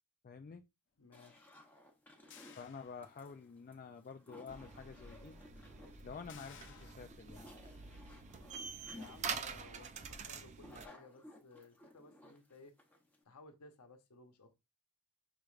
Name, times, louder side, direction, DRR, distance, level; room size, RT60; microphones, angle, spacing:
voice 1, 0.2-0.6 2.6-5.4 6.0-7.5, left 5 dB, 40° left, 0.3 m, -49 dB
voice 2, 1.0-1.5 8.9-12.7 13.2-14.5, left 3 dB, 90° left, 0.9 m, -58 dB
sound 1, 1.1-13.2, left 1 dB, 10° left, 0.8 m, -58 dB
sound 2, 2.3-3.6 4.0-4.1 6.3-6.9, left 7 dB, 55° left, 0.8 m, -58 dB
sound 3, 4.5-10.9, right 6 dB, 30° right, 0.4 m, -46 dB
6.1 x 3.2 x 2.4 m
head